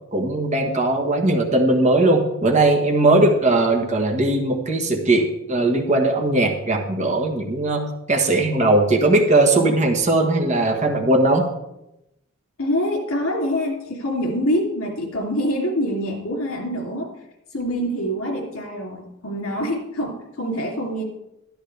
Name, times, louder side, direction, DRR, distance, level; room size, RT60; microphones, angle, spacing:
voice 1, 0.1-11.5, right 2 dB, 35° right, 2 dB, 1.4 m, -19 dB
voice 2, 12.6-17.1 17.5-21.0, equal, 85° left, -1 dB, 3.2 m, -25 dB
13.0 x 13.0 x 3.4 m, 0.87 s
head